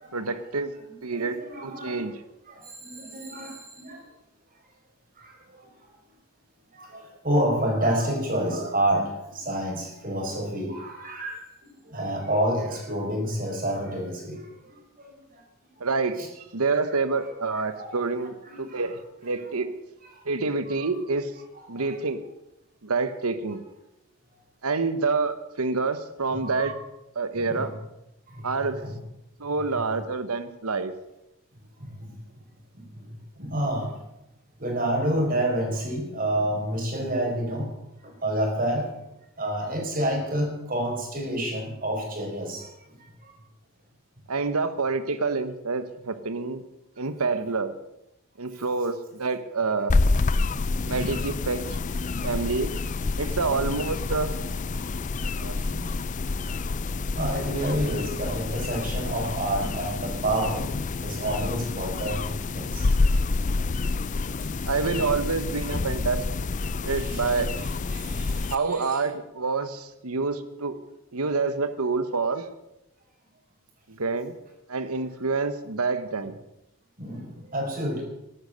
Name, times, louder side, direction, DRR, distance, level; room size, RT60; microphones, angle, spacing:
voice 1, 0.1-0.7 1.0-2.2 15.8-19.7 20.2-21.3 21.7-22.2 22.8-23.6 24.6-26.7 27.2-27.7 28.4-28.8 29.4-30.9 44.3-46.6 47.0-47.7 48.4-49.9 50.8-51.6 52.2-52.7 53.2-54.3 55.4-55.9 64.7-66.2 66.8-67.5 68.5-70.7 71.1-72.5 73.9-74.3 74.7-76.4, right 4 dB, 85° right, 11 dB, 1.1 m, -27 dB
voice 2, 1.1-2.0 2.5-4.0 5.2-5.3 5.6-5.7 6.7-11.4 11.8-14.4 16.2-16.3 17.6-18.8 20.7-20.9 21.7-21.9 26.4-26.7 27.3-27.7 28.3-28.9 31.8-32.1 32.7-33.9 34.6-37.7 38.0-38.9 39.4-42.7 54.7-54.9 57.1-60.6 61.0-62.9 66.9-68.8 77.0-78.0, right 1 dB, 40° right, 1 dB, 4.7 m, -29 dB
sound 1, 49.9-68.5, left 3 dB, 35° left, 0.4 m, -28 dB
14.0 x 12.0 x 6.5 m, 0.90 s
head